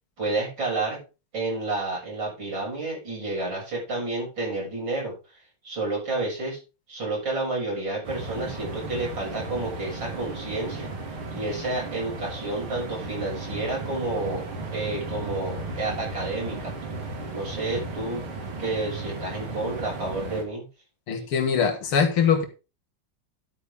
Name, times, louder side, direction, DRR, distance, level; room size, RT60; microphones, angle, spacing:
voice 1, 0.2-1.0 1.3-5.2 5.6-6.6 6.9-10.9 11.3-14.5 14.7-16.7 17.3-18.3 18.6-20.7, right 2 dB, 60° right, -3 dB, 7.7 m, -30 dB
sound 1, 8.0-20.4, right 3 dB, 80° right, 3.2 m, -35 dB
voice 2, 21.1-22.4, left 6 dB, 80° left, 6 dB, 2.6 m, -22 dB
11.5 x 8.5 x 3.6 m, 0.30 s
omnidirectional pair, 2.3 m